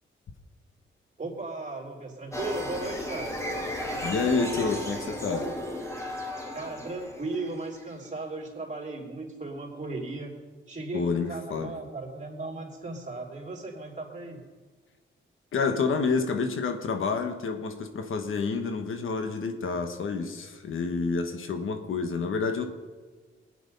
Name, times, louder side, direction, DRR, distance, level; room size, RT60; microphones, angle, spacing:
voice 1, 1.2-3.4 6.5-10.3 10.7-14.4, right 2 dB, 35° right, 0 dB, 3.2 m, -36 dB
sound 1, 2.3-7.9, equal, 15° left, 2.2 m, -35 dB
voice 2, 4.0-5.5 10.9-11.7 15.5-22.7, left 4 dB, 75° left, 6 dB, 1.4 m, -28 dB
20.0 x 9.2 x 5.4 m, 1.4 s
cardioid pair, 95°, 21 cm